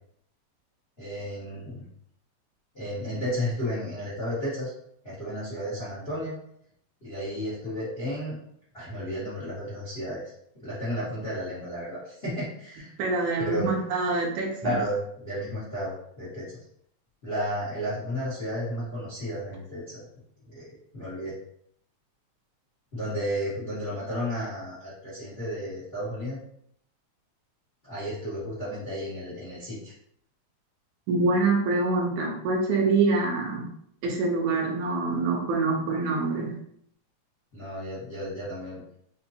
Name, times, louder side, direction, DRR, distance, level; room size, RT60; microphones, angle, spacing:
voice 1, 1.0-1.8 2.7-4.7 5.0-6.4 7.0-8.4 8.7-10.2 10.6-12.9 13.4-13.7 14.6-16.5 17.2-20.0 20.5-20.7 20.9-21.3 22.9-26.4 27.8-29.9 37.5-38.8, equal, 35° left, -9 dB, 1.0 m, -33 dB
voice 2, 13.0-14.8 31.1-33.7 34.0-36.6, right 3 dB, 80° right, 0 dB, 2.1 m, -25 dB
5.2 x 2.2 x 2.7 m, 0.68 s
omnidirectional pair, 3.4 m